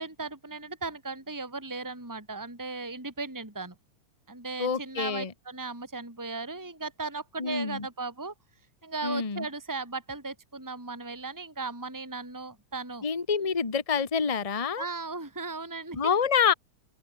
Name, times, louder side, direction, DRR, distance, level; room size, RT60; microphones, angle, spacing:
voice 1, 0.0-3.7 4.3-8.3 8.8-13.0 14.8-16.0, right 3 dB, 5° right, 4.0 m, -37 dB
voice 2, 4.6-5.3 7.4-7.9 9.0-9.5 13.0-14.8 15.9-16.5, left 6 dB, 25° left, 0.7 m, -27 dB
open air
omnidirectional pair, 3.4 m